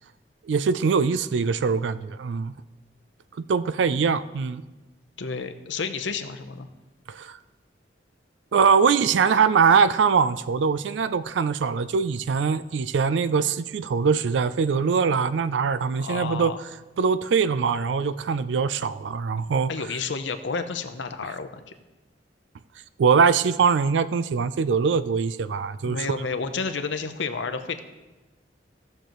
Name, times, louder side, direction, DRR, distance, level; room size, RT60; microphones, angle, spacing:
voice 1, 0.5-2.5 3.5-4.6 7.1-7.4 8.5-16.5 17.0-19.7 23.0-26.0, right 5 dB, 75° right, 15 dB, 0.4 m, -22 dB
voice 2, 5.2-6.7 16.0-16.6 19.7-21.6 25.8-27.8, left 4 dB, 75° left, 8 dB, 0.7 m, -30 dB
16.5 x 6.5 x 3.0 m, 1.1 s
head